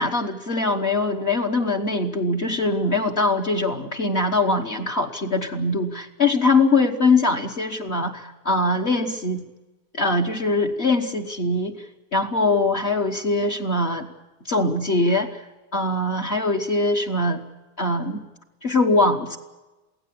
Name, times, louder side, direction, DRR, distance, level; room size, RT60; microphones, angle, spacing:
voice 1, 0.0-9.4 9.9-11.8 12.1-14.1 14.4-15.4 15.7-17.4 17.8-18.2 18.6-19.4, left 2 dB, 45° left, 6 dB, 1.4 m, -22 dB
23.5 x 16.5 x 8.5 m, 1.1 s
omnidirectional pair, 1.7 m